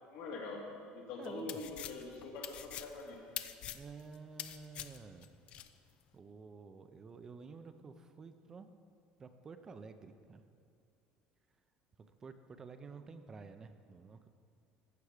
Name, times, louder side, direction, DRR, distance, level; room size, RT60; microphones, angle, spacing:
voice 1, 0.1-3.3, left 3 dB, 75° left, -1 dB, 2.0 m, -44 dB
sound 1, 1.2-5.7, left 11 dB, 45° left, 0.4 m, -45 dB
voice 2, 1.2-1.6 3.7-5.3 6.1-8.8 9.2-10.4 12.0-14.3, right 4 dB, 20° right, 9 dB, 0.4 m, -51 dB
15.0 x 5.9 x 4.9 m, 2.4 s
cardioid pair, 160°, 3 cm